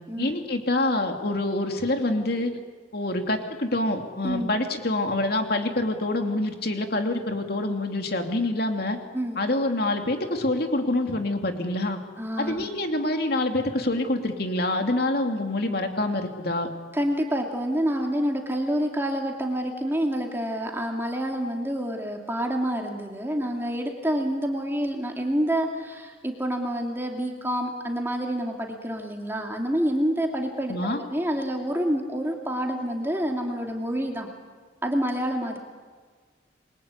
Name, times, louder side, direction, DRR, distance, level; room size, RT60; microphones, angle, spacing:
voice 1, 0.2-2.6 2.9-9.0 9.4-12.0 12.4-16.7 30.7-31.0, left 2 dB, 55° left, 4 dB, 2.9 m, -26 dB
voice 2, 12.2-12.6 16.9-34.3 34.8-35.6, equal, 15° right, 1 dB, 2.6 m, -28 dB
28.5 x 22.5 x 8.4 m, 1.5 s
head